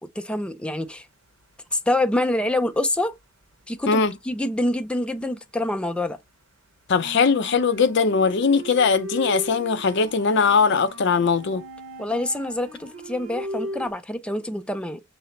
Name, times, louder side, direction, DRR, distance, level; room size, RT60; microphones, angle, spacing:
voice 1, 0.2-1.1 1.7-3.1 3.7-6.2 12.0-15.0, left 1 dB, 5° left, 0.4 m, -26 dB
sound 1, 1.2-2.2 2.5-5.4 5.7-13.9, right 1 dB, 85° right, 0.8 m, -38 dB
voice 2, 6.9-11.6, left 5 dB, 60° left, 0.5 m, -20 dB
5.7 x 2.0 x 3.8 m
head